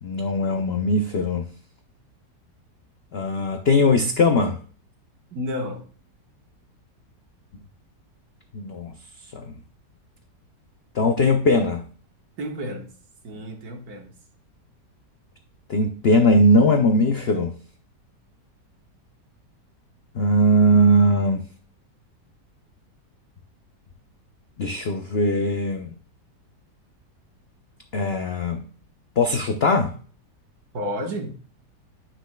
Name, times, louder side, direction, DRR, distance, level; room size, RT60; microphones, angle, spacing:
voice 1, 0.0-1.5 3.1-4.6 8.5-8.9 9.3-9.5 10.9-11.8 15.7-17.5 20.1-21.4 24.6-25.9 27.9-28.6 29.2-29.9, left 1 dB, 85° left, 5 dB, 0.5 m, -20 dB
voice 2, 5.3-5.8 12.4-12.9 13.2-14.1 30.7-31.3, equal, 60° right, 3 dB, 1.8 m, -31 dB
10.0 x 6.2 x 2.2 m, 0.43 s
omnidirectional pair, 1.9 m